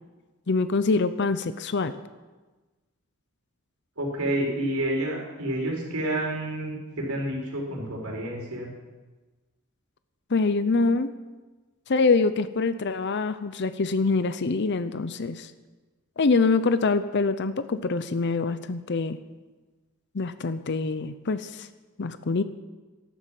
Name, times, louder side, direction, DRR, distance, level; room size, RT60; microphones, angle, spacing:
voice 1, 0.5-1.9 10.3-11.1 11.9-15.5 16.2-19.2 20.1-21.7 22.0-22.4, left 4 dB, 55° left, 12 dB, 0.6 m, -25 dB
voice 2, 4.0-8.7, right 1 dB, 80° right, -1 dB, 4.6 m, -29 dB
12.0 x 11.5 x 7.6 m, 1.2 s
head